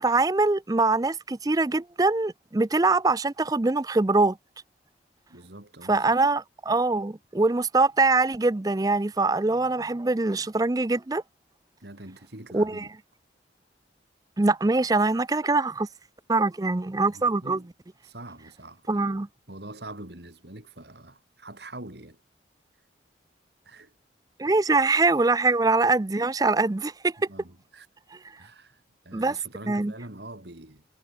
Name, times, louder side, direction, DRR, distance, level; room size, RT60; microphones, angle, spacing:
voice 1, 0.0-4.4 5.9-11.2 12.5-12.9 14.4-15.9 16.3-17.6 18.9-19.3 24.4-27.1 29.1-29.4 29.7-29.9, right 3 dB, 20° right, 0.4 m, -23 dB
voice 2, 5.3-6.2 11.8-12.9 17.1-17.7 18.0-19.2 19.5-22.2 23.6-23.9 27.2-27.9 28.4-30.9, right 1 dB, 60° right, 3.2 m, -44 dB
head